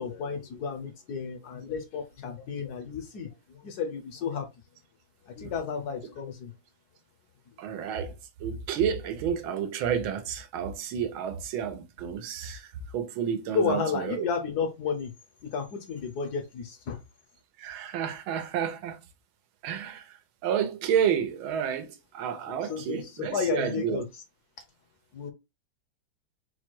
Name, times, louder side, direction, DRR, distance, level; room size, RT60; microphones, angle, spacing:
voice 1, 0.0-4.5 5.3-6.5 13.5-15.1 15.4-17.0 22.7-24.1 25.1-25.3, left 6 dB, 65° left, 1.0 m, -32 dB
voice 2, 7.6-8.1 8.4-14.2 17.6-19.0 19.6-20.2 20.4-24.0, right 8 dB, 90° right, 1.6 m, -30 dB
4.5 x 2.2 x 4.5 m
omnidirectional pair, 2.1 m